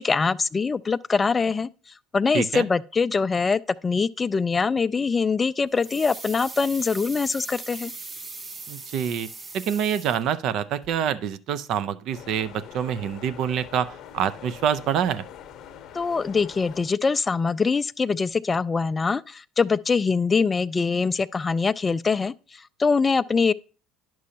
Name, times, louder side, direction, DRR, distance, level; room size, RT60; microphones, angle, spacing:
voice 1, 0.0-1.7 2.1-7.9 15.9-23.5, left 4 dB, 25° left, 0.3 m, -23 dB
voice 2, 2.3-2.7 8.7-9.3 9.5-15.2, right 8 dB, 60° right, 0.5 m, -26 dB
sound 1, 5.8-10.6 10.8-10.9, right 3 dB, 30° right, 0.9 m, -39 dB
sound 2, 12.1-16.9, left 9 dB, 55° left, 0.8 m, -44 dB
10.5 x 6.2 x 2.8 m
hypercardioid pair, 80°, 0 cm